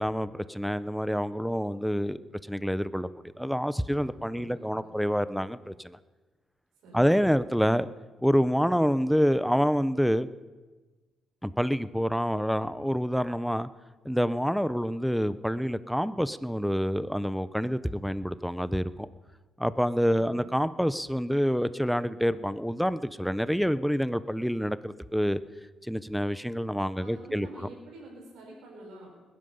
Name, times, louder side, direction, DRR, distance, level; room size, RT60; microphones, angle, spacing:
voice 1, 0.0-2.2 2.5-3.1 3.4-6.0 6.9-7.9 8.2-10.3 11.4-13.7 14.0-19.1 19.6-25.4 25.8-27.5, equal, ahead, 14 dB, 0.6 m, -27 dB
voice 2, 4.3-5.0 6.8-7.1 20.0-20.4 27.0-29.1, right 1 dB, 85° right, -2 dB, 5.7 m, -48 dB
20.5 x 11.5 x 5.5 m, 1.3 s
cardioid pair, 90°, 0 cm